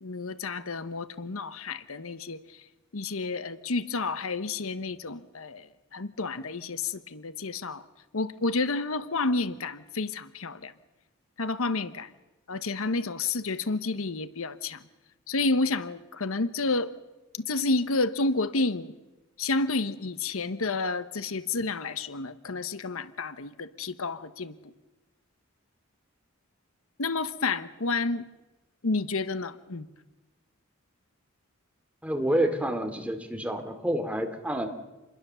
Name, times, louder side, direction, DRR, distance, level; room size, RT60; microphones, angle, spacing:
voice 1, 0.0-2.6 2.9-7.8 8.1-10.7 11.4-12.1 12.5-14.8 15.3-16.9 17.3-19.0 19.4-24.5 27.0-28.3 28.8-29.9, left 3 dB, 75° left, 13 dB, 1.0 m, -30 dB
voice 2, 32.0-34.7, right 1 dB, 5° right, 6 dB, 2.5 m, -28 dB
28.0 x 21.5 x 6.9 m, 1.1 s
head